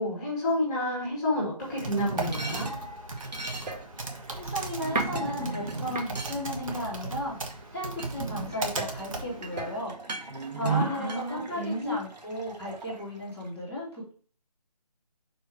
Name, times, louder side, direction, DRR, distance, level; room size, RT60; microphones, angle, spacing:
voice 1, 0.0-2.7 10.6-11.9, left 1 dB, 10° left, -4 dB, 1.5 m, -30 dB
Typing, 1.6-9.8, right 3 dB, 55° right, 1.2 m, -37 dB
sound 1, 1.9-7.5 8.0-13.5, right 3 dB, 90° right, 1.5 m, -36 dB
voice 2, 4.3-9.9 10.5-14.1, left 1 dB, 5° right, -13 dB, 0.9 m, -35 dB
5.2 x 4.5 x 4.8 m, 0.43 s
figure-of-eight pair, 170°, 21 cm